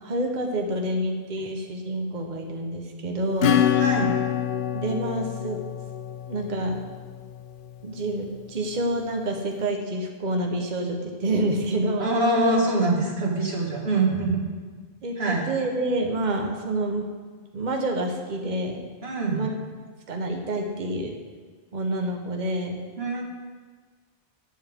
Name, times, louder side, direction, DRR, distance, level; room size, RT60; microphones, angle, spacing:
voice 1, 0.0-3.6 4.7-5.6 6.3-6.8 7.8-12.1 15.0-17.1 17.5-18.9 19.3-19.5 20.1-21.2 21.7-22.8, right 1 dB, 45° right, 2 dB, 1.1 m, -28 dB
Acoustic guitar / Strum, 3.4-7.7, left 10 dB, 60° left, 0.6 m, -26 dB
voice 2, 3.8-4.1 12.0-14.4 15.2-15.5 19.0-19.4 23.0-23.2, right 2 dB, 65° right, -2 dB, 2.2 m, -24 dB
18.5 x 7.1 x 3.6 m, 1.5 s
omnidirectional pair, 1.1 m